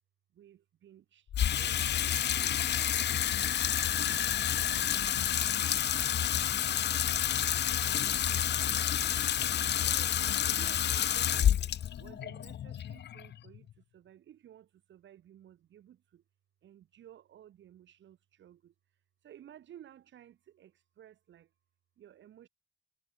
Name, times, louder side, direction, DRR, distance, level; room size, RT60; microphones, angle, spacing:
voice 1, 0.4-1.2 1.5-2.1 2.6-3.6 4.0-5.3 5.5-5.6 6.0-7.5 7.8-9.1 9.8-11.5 12.0-13.7 13.9-14.6 14.9-16.0 16.6-18.6 19.2-20.7 21.0-21.4 22.0-22.5, right 11 dB, 70° right, 4.7 m, -55 dB
Water tap faucet / Sink (filling or washing), 1.3-13.7, left 10 dB, 60° left, 1.1 m, -29 dB
cardioid pair, 90°, 20 cm